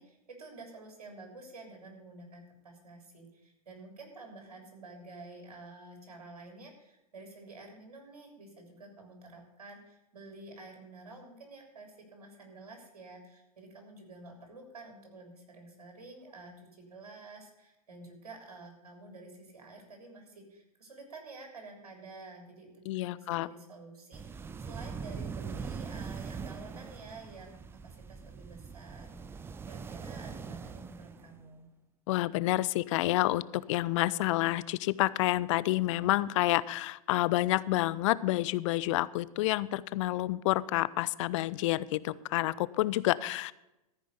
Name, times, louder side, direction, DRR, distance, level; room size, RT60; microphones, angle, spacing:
voice 1, 0.0-27.5 27.8-31.6, right 3 dB, 85° right, 3 dB, 3.4 m, -50 dB
voice 2, 22.9-23.5 32.1-43.5, left 17 dB, 55° left, 19 dB, 0.5 m, -29 dB
sound 1, 24.1-31.4, right 5 dB, 10° right, 0.4 m, -42 dB
14.0 x 5.2 x 8.1 m, 0.93 s
hypercardioid pair, 110°, 19 cm